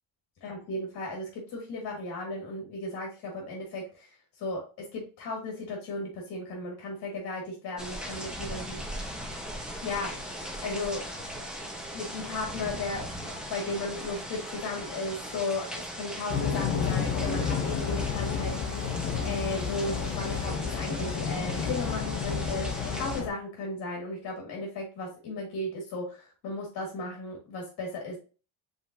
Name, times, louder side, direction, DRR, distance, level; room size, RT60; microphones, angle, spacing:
voice 1, 0.4-9.1 9.8-10.2 10.6-11.0 11.9-28.2, left 2 dB, 60° left, -1 dB, 1.7 m, -35 dB
sound 1, 7.8-23.2, equal, ahead, 0.6 m, -39 dB
sound 2, 16.3-23.3, left 6 dB, 35° left, 0.7 m, -31 dB
5.2 x 3.5 x 2.6 m, 0.35 s
cardioid pair, 170°, 39 cm